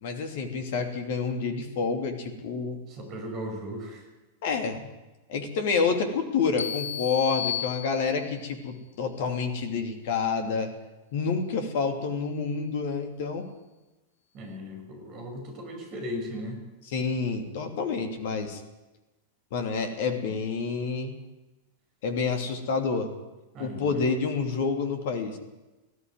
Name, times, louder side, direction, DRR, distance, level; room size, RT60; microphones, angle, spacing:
voice 1, 0.0-2.8 4.4-4.9 5.3-10.7 11.1-13.4 16.9-18.6 19.5-21.1 22.0-23.1 23.6-25.4, left 5 dB, 55° left, 5 dB, 2.9 m, -28 dB
voice 2, 2.9-4.0 14.3-16.6 23.5-24.1, equal, 40° right, 4 dB, 6.3 m, -37 dB
sound 1, 6.6-8.5, left 10 dB, 70° left, 0.6 m, -33 dB
19.5 x 14.0 x 9.6 m, 1.1 s
figure-of-eight pair, 90°, 0 cm